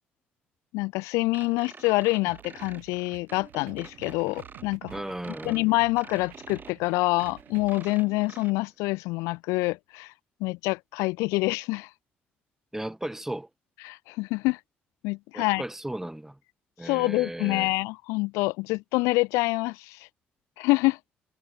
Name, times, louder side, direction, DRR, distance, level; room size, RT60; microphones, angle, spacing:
voice 1, 0.7-4.9 5.5-10.1 10.4-11.9 13.8-14.6 15.0-15.6 16.8-20.1 20.6-21.0, left 24 dB, 80° left, 0.6 m, -26 dB
sound 1, 1.3-8.5, right 5 dB, 40° right, 2.1 m, -48 dB
sound 2, 2.3-7.9, right 40 dB or more, 80° right, 2.2 m, -50 dB
voice 2, 4.9-5.6 12.7-13.5 15.3-16.4 16.8-17.7, right 1 dB, 10° right, 1.3 m, -35 dB
hypercardioid pair, 50°, 5 cm